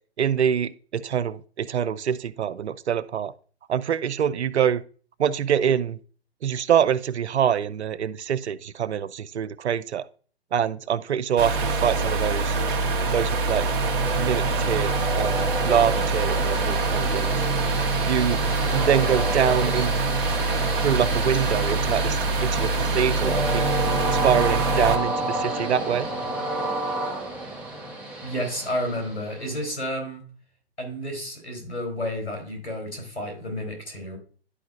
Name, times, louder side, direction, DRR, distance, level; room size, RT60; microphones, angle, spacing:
voice 1, 0.2-3.3 3.7-4.8 5.2-6.0 6.4-10.1 10.5-12.5 13.1-13.7 14.2-17.3 18.0-18.4 18.7-19.9 20.8-23.7 24.1-26.1, right 8 dB, 80° right, 16 dB, 0.6 m, -25 dB
sound 1, 11.4-25.0, right 3 dB, 55° right, 1.2 m, -25 dB
Train, 12.9-29.6, right 1 dB, 5° right, 1.8 m, -31 dB
voice 2, 28.2-30.2 30.8-34.2, equal, 85° left, 3 dB, 3.6 m, -31 dB
11.0 x 4.8 x 2.4 m, 0.42 s
hypercardioid pair, 125°, 33 cm